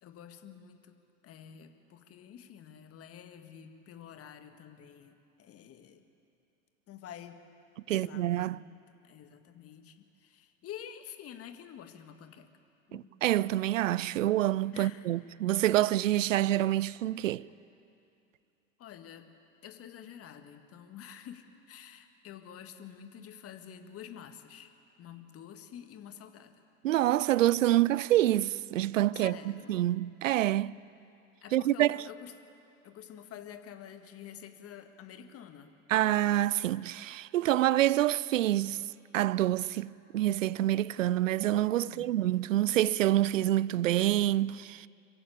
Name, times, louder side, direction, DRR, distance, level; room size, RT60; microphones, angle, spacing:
voice 1, 0.0-6.0 6.9-7.4 7.9-8.8 9.0-12.6 12.9-13.1 14.7-15.2 18.8-19.3 19.6-24.7 25.0-26.6 29.1-29.8 31.4-32.4 32.8-35.7 41.8-42.2, left 9 dB, 35° left, 1.8 m, -48 dB
voice 2, 7.9-8.6 12.9-17.4 26.8-29.3 29.7-30.8 31.5-32.0 35.9-38.8 39.1-44.9, right 14 dB, 75° right, 0.5 m, -27 dB
25.5 x 15.5 x 8.8 m
figure-of-eight pair, 75°, 39 cm